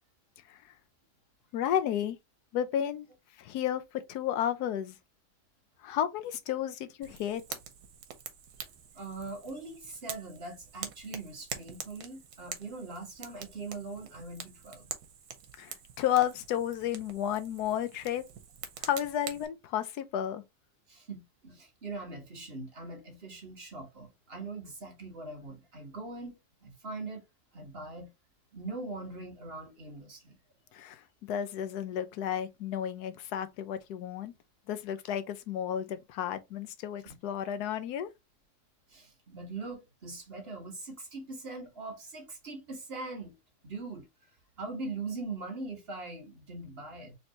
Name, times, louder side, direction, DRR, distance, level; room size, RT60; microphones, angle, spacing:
voice 1, 1.5-2.2 2.5-3.1 3.4-5.0 5.8-7.6 15.6-18.2 18.8-20.4 30.7-31.0 31.3-34.3 34.7-38.1, left 10 dB, 85° left, 1.2 m, -32 dB
Fire, 7.0-19.5, right 8 dB, 85° right, 1.3 m, -45 dB
voice 2, 8.9-14.9 20.9-27.2 27.5-28.1 28.5-30.4 37.0-37.1 38.9-43.4 43.6-44.1 44.6-47.1, right 3 dB, 40° right, 1.7 m, -41 dB
4.3 x 3.2 x 2.7 m
omnidirectional pair, 1.6 m